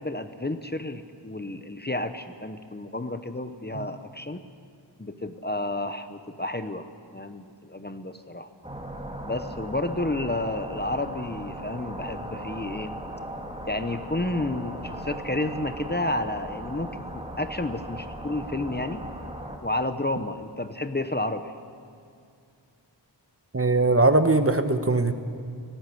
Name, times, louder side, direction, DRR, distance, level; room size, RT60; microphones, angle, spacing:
voice 1, 0.0-4.4 5.0-8.5 9.3-13.0 13.6-19.0 19.6-21.5, left 2 dB, 20° left, 9 dB, 1.0 m, -31 dB
sound 1, 8.6-19.6, right 1 dB, 15° right, 2.5 m, -38 dB
voice 2, 23.5-25.1, right 2 dB, 30° right, 8 dB, 1.3 m, -21 dB
18.5 x 18.0 x 8.5 m, 2.4 s
wide cardioid pair, 50°, 45 cm